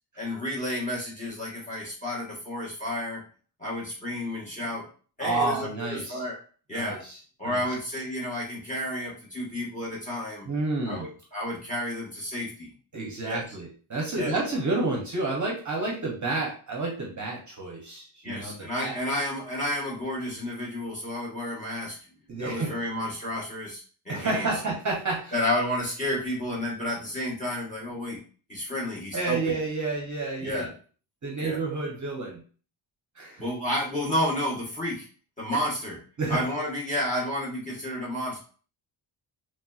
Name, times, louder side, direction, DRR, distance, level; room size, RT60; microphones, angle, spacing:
voice 1, 0.2-3.2 3.6-4.8 5.2-6.4 6.7-7.0 7.4-10.5 10.9-12.7 13.2-13.4 14.2-14.3 18.2-22.0 22.4-24.5 25.3-28.2 28.5-29.6 30.4-30.7 31.4-31.6 33.4-35.1 35.4-36.0 36.3-38.4, left 1 dB, 15° left, -4 dB, 1.1 m, -31 dB
voice 2, 5.2-6.2 6.7-7.2 7.4-7.6 10.5-11.1 12.9-19.0 22.3-22.7 24.1-25.3 29.1-30.7 31.2-32.4 33.2-33.4 35.5-35.6 36.2-36.4, right 3 dB, 35° right, 0 dB, 0.7 m, -30 dB
3.1 x 2.6 x 2.3 m, 0.40 s
wide cardioid pair, 125°, 50 cm